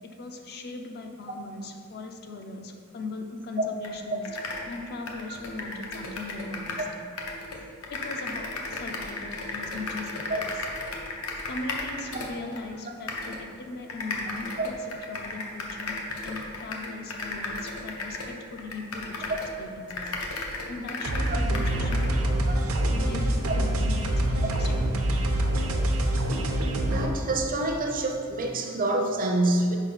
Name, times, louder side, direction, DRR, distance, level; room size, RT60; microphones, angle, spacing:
voice 1, 0.0-6.9 7.9-10.7 11.5-20.1 20.7-22.5 22.9-24.9, left 3 dB, 50° left, 5 dB, 0.5 m, -39 dB
sound 1, 3.8-3.9 4.2-6.9 7.2-12.6 13.1-13.4 13.9-19.6 19.9-22.1, left 3 dB, 80° left, 0.8 m, -35 dB
sound 2, 21.0-27.1, right 1 dB, 75° right, 0.7 m, -25 dB
voice 2, 26.9-29.8, right 2 dB, 40° right, 3 dB, 0.6 m, -26 dB
4.8 x 4.0 x 5.6 m, 2.1 s
head